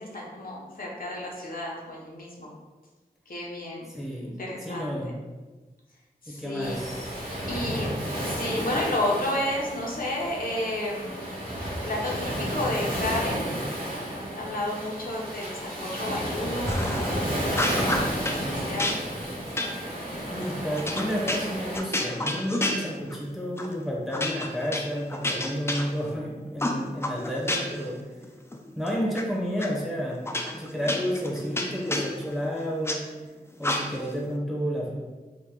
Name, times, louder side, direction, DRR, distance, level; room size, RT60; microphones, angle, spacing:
voice 1, 0.0-2.5 3.3-3.9 4.2-5.1 6.2-6.8 7.5-7.9 8.2-11.2 11.9-13.5 14.1-18.9, left 1 dB, 60° left, -3 dB, 0.7 m, -32 dB
voice 2, 3.9-5.1 6.3-7.2 20.2-28.0 28.8-30.2 30.5-33.0 33.6-35.0, equal, ahead, -3 dB, 0.7 m, -31 dB
Waves surf, 6.6-21.8, equal, 65° right, 1.2 m, -32 dB
sound 1, 16.7-17.2 17.5-18.4 18.8-23.3 23.6-23.8 24.1-26.2 26.6-27.9 28.2-29.2 29.6-29.7 30.3-33.0 33.6-34.2, left 1 dB, 15° left, 0.3 m, -30 dB
2.9 x 2.2 x 3.6 m, 1.2 s
wide cardioid pair, 75°, 16 cm